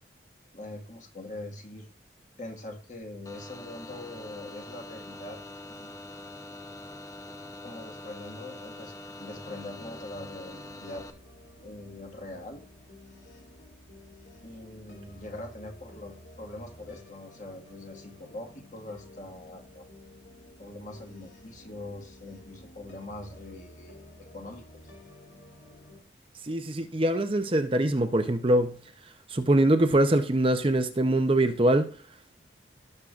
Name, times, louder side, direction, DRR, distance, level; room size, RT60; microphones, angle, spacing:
voice 1, 0.5-1.9 2.4-5.4 5.7-5.9 7.4-11.0 11.6-12.6 14.4-19.8 20.6-24.0 24.3-24.6, left 2 dB, 40° left, 1.7 m, -43 dB
sound 1, 3.3-11.1, left 2 dB, 20° left, 0.6 m, -44 dB
sound 2, 9.2-26.0, left 1 dB, 75° left, 2.9 m, -51 dB
voice 2, 26.4-32.0, right 1 dB, 30° right, 0.6 m, -24 dB
17.5 x 6.5 x 2.5 m
head